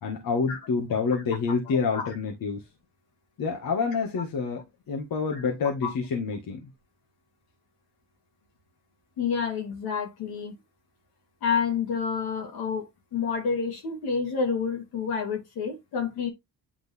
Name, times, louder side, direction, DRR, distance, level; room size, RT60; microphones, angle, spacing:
voice 1, 0.0-2.6 3.4-6.7, left 5 dB, 65° left, 1.8 m, -28 dB
voice 2, 9.2-10.6 11.4-12.9 13.1-16.3, left 6 dB, 85° left, 2.6 m, -29 dB
8.9 x 3.9 x 3.5 m
supercardioid pair, 65°, 37 cm